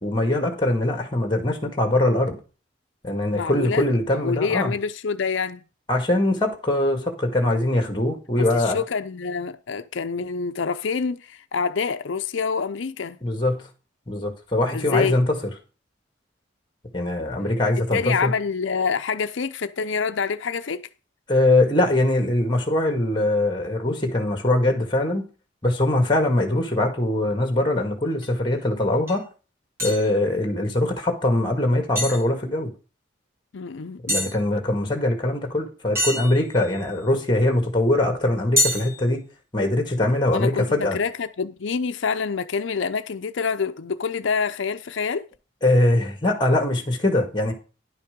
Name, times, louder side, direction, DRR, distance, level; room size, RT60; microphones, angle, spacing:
voice 1, 0.0-2.4 3.0-4.7 5.9-8.8 13.2-13.7 14.1-15.4 16.9-18.3 21.3-25.2 25.6-29.2 29.8-32.7 34.1-39.2 39.5-41.0 45.6-47.5, left 1 dB, 25° left, 2.0 m, -22 dB
voice 2, 3.3-3.8 4.1-5.6 8.4-13.2 14.7-15.2 17.9-20.8 33.5-34.2 40.3-45.3, left 5 dB, 75° left, 0.5 m, -26 dB
sound 1, 28.2-28.3 29.1-29.2 29.8-30.1 32.0-32.2 34.1-34.3 36.0-36.8 38.6-39.0, equal, 15° right, 2.6 m, -25 dB
11.0 x 5.7 x 5.2 m
head